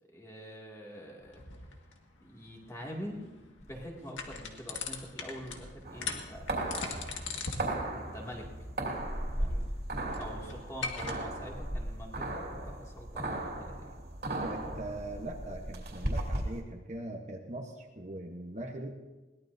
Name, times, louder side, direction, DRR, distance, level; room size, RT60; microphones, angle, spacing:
voice 1, 0.0-1.4 2.2-6.9 7.9-8.7 9.4-9.7 10.1-14.0, equal, 15° left, -2 dB, 2.2 m, -45 dB
sound 1, 1.2-11.1, left 4 dB, 85° left, 1.8 m, -42 dB
Insect, 3.6-5.9 6.3-7.8 9.4-11.1, equal, 35° left, 1.1 m, -47 dB
sound 2, 5.9-16.6, right 1 dB, 55° right, 2.7 m, -36 dB
voice 2, 14.4-19.0, right 1 dB, 35° right, 1 dB, 1.1 m, -41 dB
22.0 x 18.0 x 2.7 m, 1.2 s
head